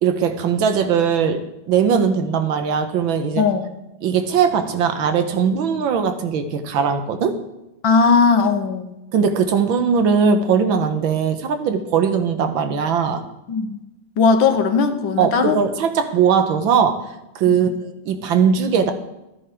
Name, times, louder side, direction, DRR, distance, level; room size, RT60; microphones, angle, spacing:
voice 1, 0.0-3.5 4.0-7.4 9.1-13.2 15.2-17.0 17.4-18.9, right 6 dB, 80° right, 8 dB, 1.8 m, -19 dB
voice 2, 3.4-3.7 7.8-8.9 13.5-13.8 14.2-15.6 17.5-17.7, left 5 dB, 75° left, 7 dB, 1.8 m, -18 dB
13.0 x 9.8 x 4.5 m, 0.94 s
omnidirectional pair, 2.2 m